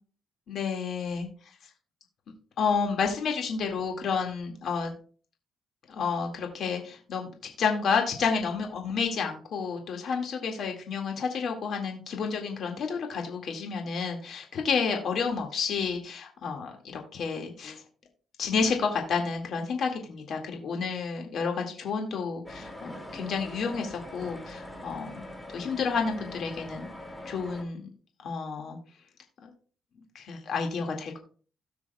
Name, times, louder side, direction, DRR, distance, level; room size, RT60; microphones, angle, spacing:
voice 1, 0.5-1.3 2.6-4.9 5.9-7.3 7.6-17.8 18.4-25.2 25.5-26.9 27.3-27.8 28.2-28.8 29.4-29.5 30.1-31.2, left 5 dB, 65° left, 2 dB, 1.9 m, -30 dB
sound 1, 22.5-27.6, left 1 dB, 10° left, 2.3 m, -42 dB
17.5 x 6.2 x 2.3 m, 0.42 s
cardioid pair, 90°, 0 cm